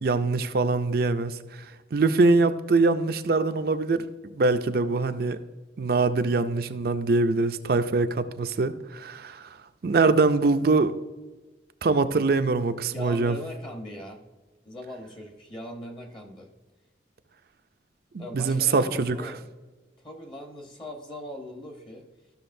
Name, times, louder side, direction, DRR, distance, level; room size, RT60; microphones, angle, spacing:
voice 1, 0.0-1.7 1.9-4.0 4.3-5.4 5.8-9.4 9.8-11.0 11.8-13.4 18.1-19.2, right 3 dB, 55° right, 10 dB, 0.5 m, -23 dB
voice 2, 12.8-14.2 14.6-16.5 18.2-19.4 20.0-22.1, left 1 dB, 25° left, 2 dB, 1.0 m, -40 dB
13.0 x 6.4 x 2.6 m, 1.2 s
head